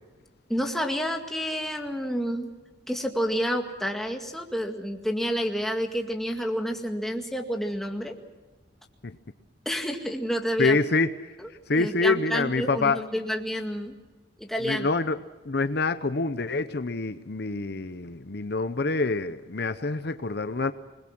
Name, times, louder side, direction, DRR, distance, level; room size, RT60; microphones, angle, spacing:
voice 1, 0.5-2.5 2.9-8.2 9.7-10.8 11.4-13.9 14.4-14.9, equal, ahead, 2 dB, 2.0 m, -29 dB
voice 2, 10.6-11.1 11.7-13.0 14.6-15.2 15.4-20.7, left 3 dB, 55° left, 11 dB, 0.8 m, -26 dB
27.5 x 21.0 x 6.1 m, 1.2 s
head